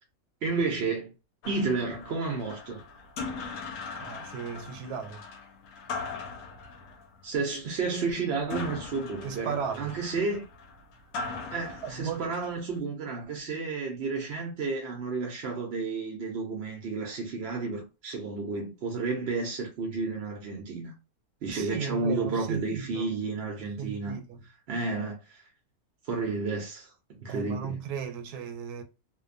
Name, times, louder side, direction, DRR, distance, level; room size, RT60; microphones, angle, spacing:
voice 1, 0.4-1.1 1.4-2.8 7.2-10.5 11.5-20.9 21.4-24.2 24.7-25.4 26.1-27.8, right 4 dB, 60° right, 0.7 m, -31 dB
sound 1, 1.4-12.8, left 4 dB, 75° left, 1.0 m, -40 dB
voice 2, 4.0-5.2 9.2-10.0 11.8-12.3 21.5-23.1 23.6-24.4 27.3-28.8, right 7 dB, 90° right, 1.1 m, -36 dB
2.7 x 2.2 x 2.5 m
omnidirectional pair, 1.6 m